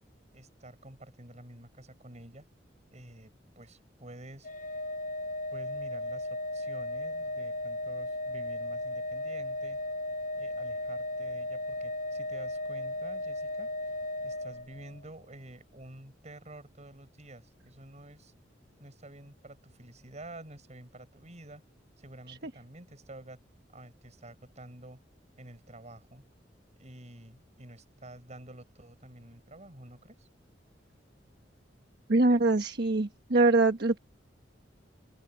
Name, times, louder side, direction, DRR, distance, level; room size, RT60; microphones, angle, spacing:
voice 1, 0.3-2.4 2.9-4.5 5.5-9.8 10.4-13.7 14.2-18.3 18.8-21.6 22.0-23.4 23.7-25.0 25.4-26.2 26.8-30.3, right 1 dB, 40° right, 6.8 m, -49 dB
Organ, 4.4-15.1, left 1 dB, 45° left, 0.8 m, -36 dB
voice 2, 32.1-34.0, right 2 dB, 60° right, 1.3 m, -23 dB
open air
head